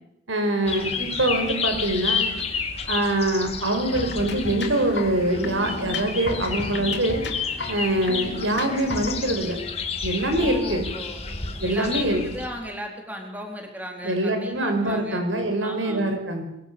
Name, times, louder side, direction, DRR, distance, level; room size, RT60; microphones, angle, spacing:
voice 1, 0.3-2.3 2.9-7.2 7.7-9.6 10.0-10.8 11.6-12.2 14.0-16.4, right 1 dB, 85° right, 6 dB, 5.2 m, -24 dB
sound 1, 0.6-12.5, left 5 dB, 30° left, 2.6 m, -31 dB
sound 2, 4.0-9.2, left 2 dB, 60° left, 3.3 m, -34 dB
voice 2, 10.4-11.2 11.6-15.2 15.6-16.1, equal, 10° right, 2 dB, 4.0 m, -36 dB
24.0 x 23.0 x 7.0 m, 0.86 s
head